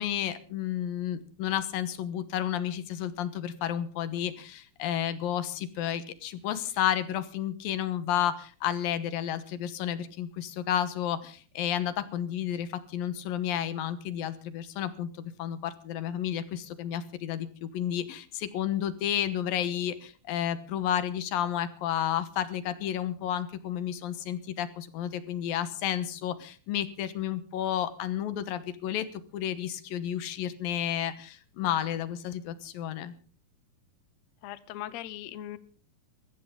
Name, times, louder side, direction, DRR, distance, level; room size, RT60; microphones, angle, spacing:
voice 1, 0.0-33.1, left 10 dB, 85° left, 13 dB, 3.0 m, -31 dB
voice 2, 34.4-35.6, left 13 dB, 65° left, 15 dB, 1.8 m, -39 dB
21.5 x 15.0 x 3.8 m, 0.40 s
omnidirectional pair, 4.0 m